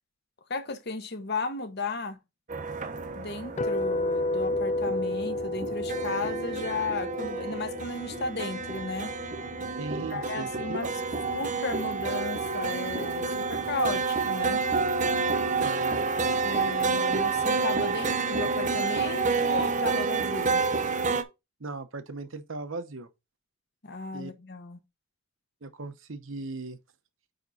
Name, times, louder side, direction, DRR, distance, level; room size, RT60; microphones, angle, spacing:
voice 1, 0.5-2.2 3.1-9.1 10.0-10.9 11.3-14.6 16.4-20.6 23.8-24.8, left 3 dB, 50° left, 1.1 m, -35 dB
sound 1, 2.5-21.2, right 4 dB, 35° right, 0.7 m, -29 dB
sound 2, 3.6-9.6, left 2 dB, 35° left, 0.5 m, -32 dB
voice 2, 9.8-10.8 15.6-16.0 21.6-23.1 24.1-24.3 25.6-26.8, right 3 dB, 65° right, 0.9 m, -38 dB
9.1 x 3.6 x 4.1 m
head